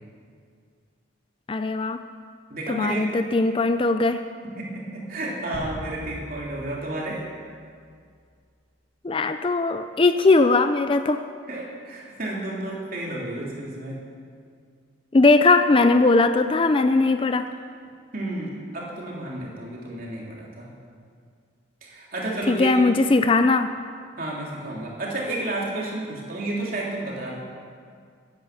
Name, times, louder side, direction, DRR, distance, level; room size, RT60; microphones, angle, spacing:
voice 1, 1.5-2.0 2.7-4.2 9.0-11.2 15.1-17.5 22.5-23.7, left 3 dB, 25° left, 9 dB, 0.4 m, -19 dB
voice 2, 2.5-3.1 4.6-7.2 11.5-14.0 17.0-17.1 18.1-20.7 21.8-22.7 24.2-27.3, right 1 dB, 45° right, -3 dB, 3.4 m, -31 dB
sound 1, 5.5-8.0, equal, 85° left, 2.7 m, -40 dB
15.5 x 10.5 x 6.9 m, 2.2 s
head